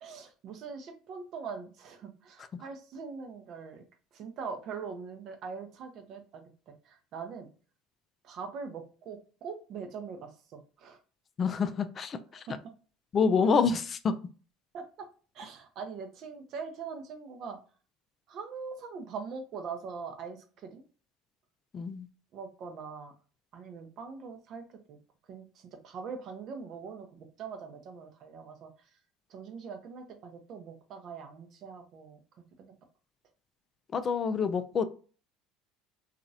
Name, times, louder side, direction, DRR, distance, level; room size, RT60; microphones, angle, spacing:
voice 1, 0.0-3.8 4.1-7.5 8.2-11.0 12.5-12.6 14.7-15.1 15.3-17.6 18.3-20.8 22.3-23.1 23.5-25.0 25.3-28.7 29.3-32.2 32.6-32.7, right 5 dB, 55° right, 5 dB, 0.6 m, -42 dB
voice 2, 11.4-12.4 13.1-14.2 21.7-22.1 33.9-34.9, left 5 dB, 40° left, 10 dB, 0.3 m, -27 dB
2.9 x 2.4 x 2.7 m, 0.38 s
hypercardioid pair, 70°, 0 cm